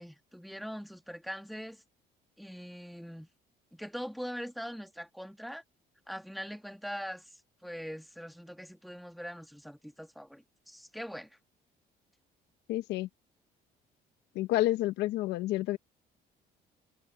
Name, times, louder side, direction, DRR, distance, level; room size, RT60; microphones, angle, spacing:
voice 1, 0.0-1.8 2.4-3.3 3.7-5.6 6.1-11.4, equal, ahead, 2.1 m, -42 dB
voice 2, 12.7-13.1 14.3-15.8, left 16 dB, 90° left, 1.1 m, -29 dB
cardioid pair, 110°, 17 cm